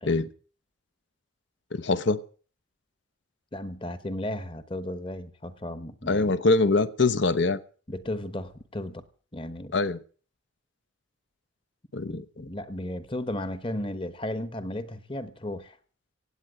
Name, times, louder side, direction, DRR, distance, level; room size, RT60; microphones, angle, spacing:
voice 1, 1.7-2.2 6.1-7.6 9.7-10.0 11.9-12.5, left 3 dB, 60° left, 15 dB, 0.8 m, -24 dB
voice 2, 3.5-6.3 7.9-9.0 9.3-9.8 12.1-15.8, left 1 dB, 25° left, 14 dB, 1.1 m, -35 dB
17.0 x 8.7 x 7.6 m, 0.41 s
head